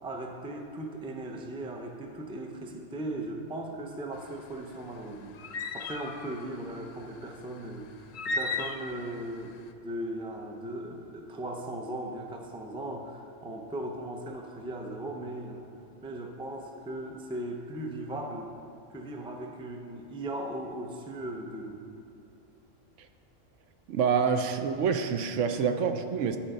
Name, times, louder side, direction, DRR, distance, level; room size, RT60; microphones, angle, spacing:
voice 1, 0.0-15.6 16.0-18.5 18.9-21.8, right 1 dB, 5° right, 2 dB, 0.4 m, -38 dB
sound 1, 4.2-9.6, left 3 dB, 85° left, 1.0 m, -35 dB
voice 2, 23.9-26.4, right 6 dB, 75° right, 7 dB, 0.9 m, -27 dB
11.5 x 4.3 x 6.5 m, 2.7 s
omnidirectional pair, 1.3 m